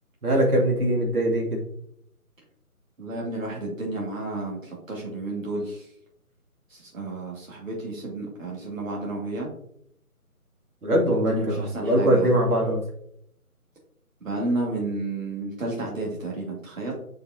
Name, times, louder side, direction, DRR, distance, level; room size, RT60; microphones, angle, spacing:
voice 1, 0.2-1.6 10.8-12.8, right 1 dB, 80° right, -1 dB, 2.4 m, -22 dB
voice 2, 3.0-5.9 6.7-9.5 11.1-12.4 14.2-16.9, right 2 dB, 60° right, -2 dB, 2.1 m, -31 dB
7.5 x 5.2 x 2.7 m, 0.71 s
figure-of-eight pair, 175°, 45 cm